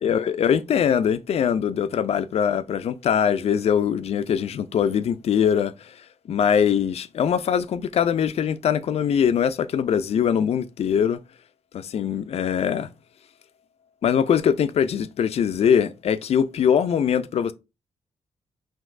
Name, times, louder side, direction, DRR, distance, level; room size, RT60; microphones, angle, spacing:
voice 1, 0.0-6.0 6.3-11.2 11.7-12.9 14.0-17.5, left 8 dB, 55° left, 0.4 m, -22 dB
5.8 x 2.6 x 2.5 m
wide cardioid pair, 130°, 12 cm